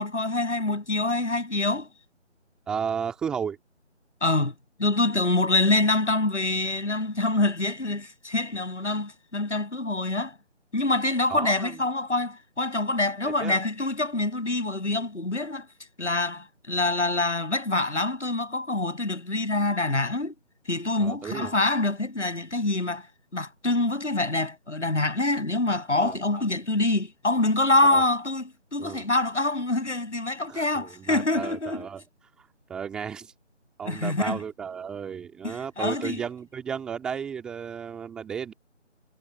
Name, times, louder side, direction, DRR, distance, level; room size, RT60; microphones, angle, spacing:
voice 1, 0.0-1.9 4.2-4.5 4.8-10.3 10.7-15.7 16.0-20.3 20.7-23.1 23.3-31.9 33.9-34.4 35.4-36.2, left 2 dB, 70° left, 7.8 m, -25 dB
voice 2, 2.7-3.6 11.3-11.8 13.2-13.6 21.0-21.5 26.0-26.2 27.8-28.0 28.8-29.0 30.5-32.0 32.4-33.3 33.8-38.5, right 7 dB, ahead, 1.9 m, -34 dB
figure-of-eight pair, 165°, 36 cm